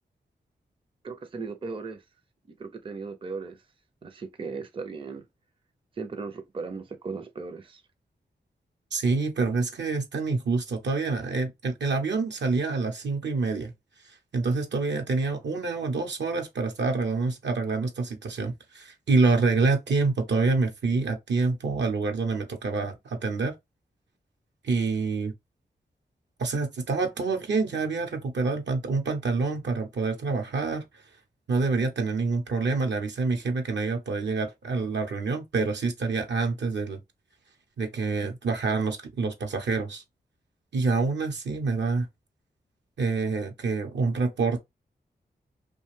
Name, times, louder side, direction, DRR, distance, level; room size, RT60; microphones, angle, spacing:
voice 1, 1.0-2.0 2.5-3.6 4.0-5.3 6.0-7.8, right 4 dB, 30° right, 0.5 m, -37 dB
voice 2, 8.9-13.7 14.3-23.5 24.6-25.3 26.4-30.8 31.5-37.0 37.8-40.0 40.7-42.1 43.0-44.6, right 4 dB, 75° right, 0.8 m, -27 dB
2.5 x 2.2 x 3.1 m
cardioid pair, 50°, 18 cm